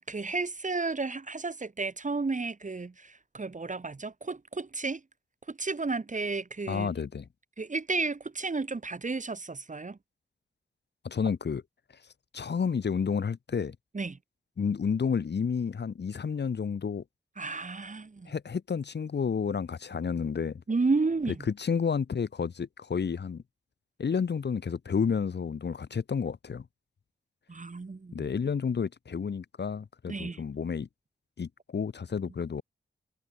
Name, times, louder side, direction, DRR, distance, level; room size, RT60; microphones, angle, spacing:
voice 1, 0.0-5.0 5.5-6.9 7.6-10.0 13.9-14.2 17.4-18.3 20.7-21.4 27.5-28.3 30.1-30.4, right 3 dB, 40° right, 2.7 m, -32 dB
voice 2, 6.7-7.3 11.0-11.6 12.3-13.8 14.6-17.0 18.3-20.6 21.5-23.4 24.0-26.6 28.1-30.9 31.4-32.6, left 6 dB, 60° left, 1.4 m, -30 dB
cardioid pair, 55°, 20 cm